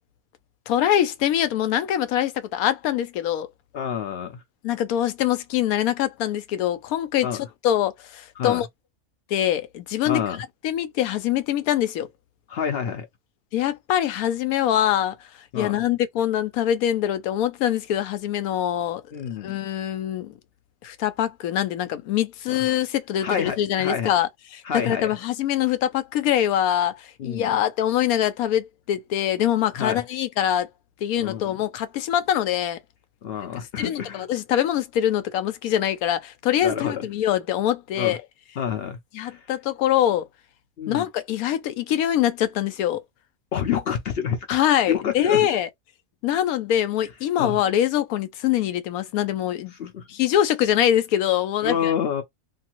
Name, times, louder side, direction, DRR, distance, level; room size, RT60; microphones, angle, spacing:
voice 1, 0.7-3.5 4.6-8.7 9.3-10.2 10.6-12.1 13.5-15.3 15.5-19.0 19.4-20.3 20.8-24.3 24.9-30.7 31.0-32.8 33.8-38.2 39.1-40.3 40.9-43.0 44.5-45.7 46.2-51.9, left 11 dB, 90° left, 1.0 m, -24 dB
voice 2, 3.7-4.4 7.2-7.4 8.4-8.6 10.1-10.4 12.5-13.1 15.5-15.8 19.1-19.5 22.5-22.6 23.2-24.1 24.6-25.1 27.2-27.5 29.8-30.0 31.2-31.6 33.2-34.3 36.6-37.1 38.0-38.2 38.6-39.5 40.8-41.1 43.5-44.6 44.9-45.5 47.4-47.6 49.8-50.1 51.6-52.2, left 7 dB, 60° left, 0.6 m, -28 dB
2.6 x 2.5 x 2.9 m
omnidirectional pair, 1.5 m